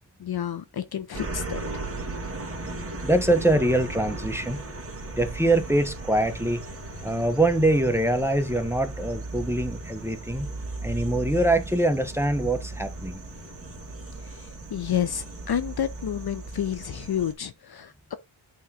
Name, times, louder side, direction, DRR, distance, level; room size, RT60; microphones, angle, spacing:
voice 1, 0.2-1.6 14.7-18.2, left 9 dB, 55° left, 0.7 m, -29 dB
sound 1, 1.1-17.3, right 2 dB, 30° right, 2.0 m, -36 dB
voice 2, 3.0-4.6 5.1-6.6 7.0-10.5 10.8-13.2, right 1 dB, 5° right, 0.9 m, -24 dB
8.4 x 3.7 x 4.2 m
wide cardioid pair, 105°, 47 cm